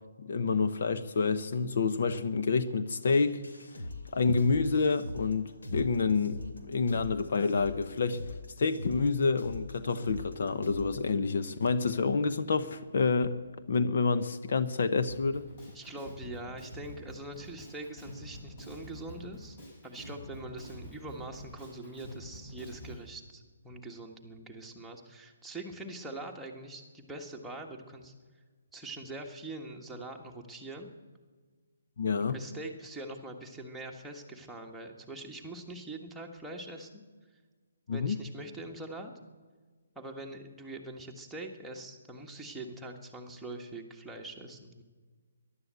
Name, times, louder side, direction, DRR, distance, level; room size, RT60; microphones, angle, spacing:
voice 1, 0.2-3.4 4.1-6.4 6.7-8.2 8.6-13.4 13.7-15.5 32.0-32.4 37.9-38.2, left 4 dB, 60° left, 0.9 m, -28 dB
sound 1, 3.1-11.0, left 2 dB, 85° left, 2.7 m, -43 dB
Drum kit, 15.1-23.0, equal, 40° left, 6.3 m, -47 dB
voice 2, 15.7-19.6 19.8-28.1 28.7-30.9 32.3-37.0 37.9-39.1 39.9-44.8, right 2 dB, 5° right, 1.5 m, -43 dB
14.5 x 11.5 x 8.3 m
hypercardioid pair, 155°, 0 cm